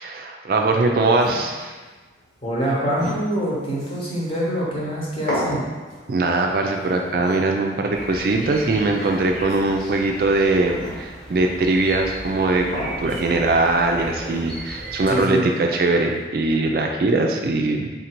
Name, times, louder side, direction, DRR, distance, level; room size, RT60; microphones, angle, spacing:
voice 1, 0.0-1.8 6.1-17.9, right 2 dB, 50° right, 2 dB, 0.3 m, -21 dB
sound 1, 1.2-16.2, equal, 60° left, 1.2 m, -36 dB
voice 2, 2.4-5.6 15.1-15.5, equal, 30° left, -6 dB, 0.9 m, -24 dB
sound 2, 7.9-15.2, right 1 dB, ahead, 0.6 m, -37 dB
3.7 x 2.6 x 4.4 m, 1.3 s
head